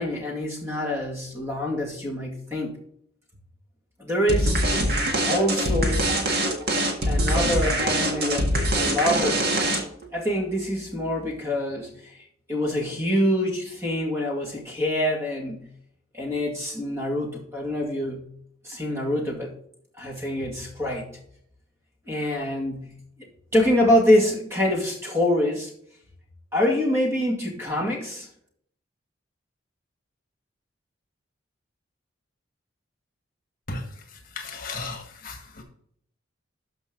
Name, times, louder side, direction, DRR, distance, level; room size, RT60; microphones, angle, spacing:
voice 1, 0.0-2.7 4.0-4.7 5.2-6.0 7.1-9.5 9.7-9.8 10.1-12.2 12.5-15.7 16.1-18.3 18.6-19.5 20.0-21.2 22.1-23.0 23.5-25.7 26.5-28.3, left 1 dB, 15° right, -1 dB, 2.1 m, -25 dB
sound 1, 4.3-10.1, right 1 dB, 50° right, 1.8 m, -23 dB
voice 2, 34.3-35.6, left 3 dB, 45° left, 4 dB, 1.5 m, -35 dB
13.0 x 5.4 x 3.9 m, 0.66 s
head